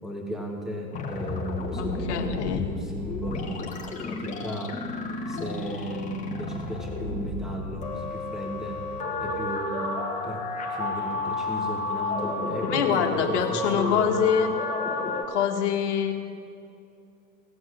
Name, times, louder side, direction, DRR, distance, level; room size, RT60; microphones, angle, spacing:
voice 1, 0.0-4.8 5.3-8.8 9.2-9.9 10.2-10.4 10.7-14.2, equal, ahead, 1 dB, 1.6 m, -35 dB
sound 1, 0.9-15.2, left 2 dB, 15° left, 1.5 m, -31 dB
voice 2, 1.8-2.6 12.7-14.5 15.3-16.1, left 8 dB, 50° left, 3 dB, 1.8 m, -25 dB
17.0 x 8.0 x 6.4 m, 2.4 s
figure-of-eight pair, 105°, 47 cm